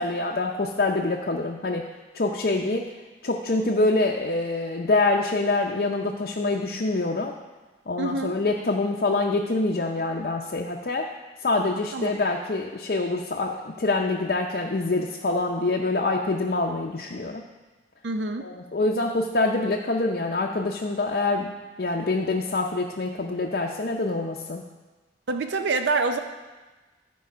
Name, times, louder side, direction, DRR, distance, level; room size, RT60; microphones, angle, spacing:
voice 1, 0.0-1.9 2.1-2.9 3.2-7.4 7.9-11.1 11.4-17.4 18.4-24.7, left 2 dB, 55° left, -1 dB, 0.6 m, -25 dB
voice 2, 8.0-8.4 11.9-12.1 18.0-18.5 25.3-26.2, right 3 dB, 75° right, 7 dB, 0.5 m, -26 dB
13.5 x 4.7 x 5.1 m, 1.3 s
head